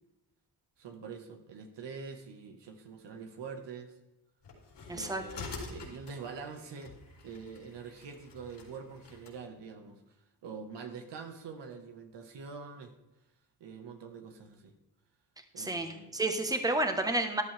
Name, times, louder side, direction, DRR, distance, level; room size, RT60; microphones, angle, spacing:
voice 1, 0.8-3.9 4.9-6.9 7.2-10.0 10.4-13.0 13.6-14.7 15.5-16.1, right 5 dB, 80° right, 5 dB, 1.7 m, -45 dB
sound 1, 4.4-9.4, left 3 dB, 80° left, 3.8 m, -47 dB
voice 2, 4.9-5.2 15.6-17.4, right 2 dB, 10° right, 6 dB, 1.4 m, -30 dB
13.5 x 12.0 x 3.5 m, 0.97 s
cardioid pair, 105°, 42 cm